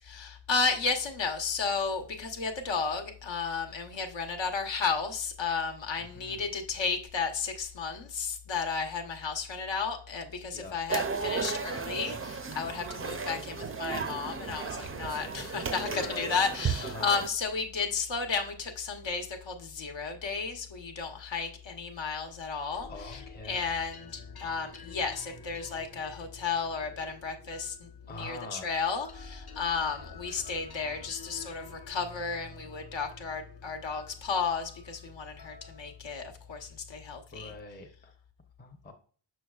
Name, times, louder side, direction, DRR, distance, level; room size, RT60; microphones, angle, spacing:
voice 1, 0.0-37.5, left 5 dB, 70° left, 5 dB, 1.2 m, -33 dB
voice 2, 6.0-6.5 10.5-10.8 14.9-16.4 16.8-17.2 22.9-23.7 28.1-28.7 37.3-38.1 38.6-38.9, left 2 dB, 20° left, 3 dB, 0.7 m, -44 dB
sound 1, 10.9-17.3, right 5 dB, 30° right, 0.4 m, -35 dB
sound 2, 22.7-37.4, left 3 dB, 55° left, 1.0 m, -50 dB
6.4 x 6.3 x 2.3 m, 0.43 s
wide cardioid pair, 175°, 46 cm